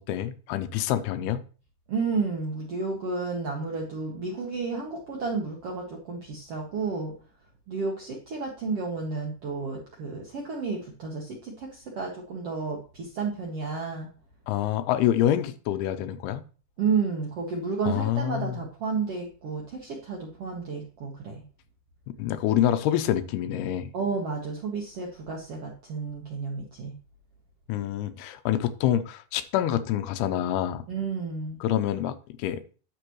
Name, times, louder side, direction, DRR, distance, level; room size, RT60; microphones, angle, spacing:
voice 1, 0.0-1.4 14.5-16.4 17.9-18.6 22.2-23.9 27.7-30.8 31.6-32.6, left 11 dB, 85° left, 11 dB, 2.7 m, -26 dB
voice 2, 1.9-7.1 7.7-14.1 16.8-21.4 23.9-26.9 30.9-31.6, right 4 dB, 75° right, -1 dB, 1.4 m, -31 dB
9.7 x 7.0 x 3.0 m, 0.37 s
omnidirectional pair, 4.5 m